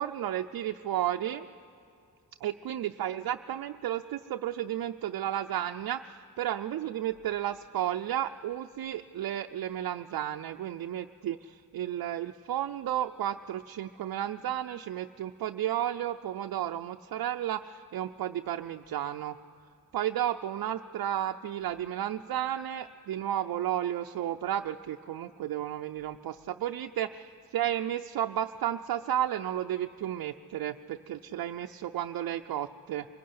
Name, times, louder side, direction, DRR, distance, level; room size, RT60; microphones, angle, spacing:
voice 1, 0.0-1.5 2.4-19.4 19.9-33.1, right 11 dB, 70° right, 4 dB, 0.6 m, -33 dB
25.0 x 17.0 x 9.5 m, 2.6 s
wide cardioid pair, 135°, 36 cm